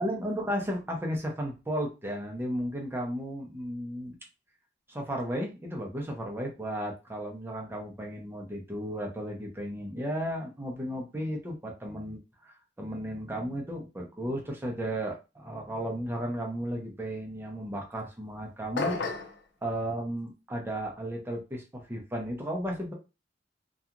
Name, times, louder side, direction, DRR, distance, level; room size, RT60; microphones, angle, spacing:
voice 1, 0.0-4.2 4.9-19.0 19.6-22.9, equal, 15° right, 0 dB, 0.6 m, -34 dB
sound 1, 18.8-19.4, left 3 dB, 65° left, 0.5 m, -31 dB
2.8 x 2.3 x 2.4 m, 0.28 s
head